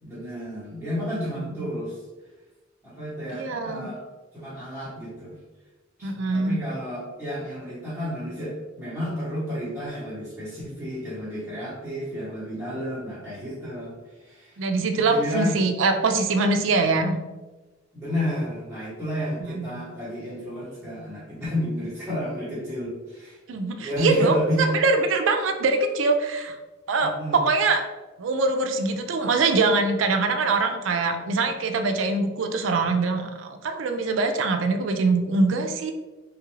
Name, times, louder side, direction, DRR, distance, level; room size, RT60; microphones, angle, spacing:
voice 1, 0.0-2.0 2.8-4.0 4.3-5.4 6.0-14.6 15.0-15.5 17.9-23.4 23.8-24.7 27.0-27.4, left 1 dB, 5° right, -11 dB, 0.9 m, -31 dB
voice 2, 3.3-3.9 6.0-6.6 14.6-17.2 19.4-19.7 23.5-26.6 26.9-27.9 28.2-35.9, right 3 dB, 70° right, 6 dB, 0.4 m, -23 dB
3.1 x 2.4 x 3.0 m, 1.2 s
head